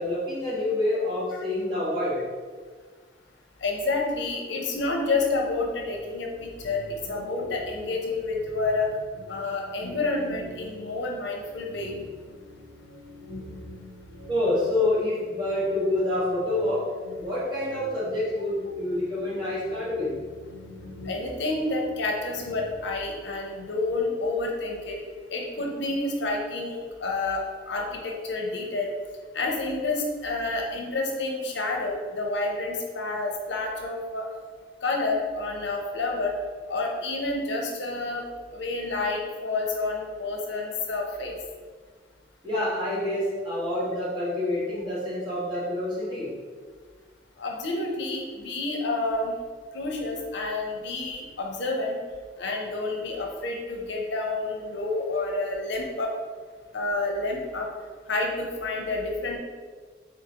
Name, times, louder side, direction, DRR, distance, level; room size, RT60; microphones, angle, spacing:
voice 1, 0.0-2.3 14.3-20.1 42.4-46.4, left 1 dB, 25° right, -9 dB, 1.3 m, -27 dB
voice 2, 3.6-8.9 9.3-11.9 21.0-25.0 25.3-28.9 29.3-34.3 34.8-36.4 36.7-38.2 38.5-41.3 47.4-49.4 49.7-52.0 52.4-56.1 56.7-57.7 58.1-59.4, left 3 dB, 70° left, 1 dB, 0.6 m, -29 dB
sound 1, 5.7-22.8, left 1 dB, 80° right, 1.5 m, -45 dB
3.8 x 3.8 x 2.8 m, 1.5 s
head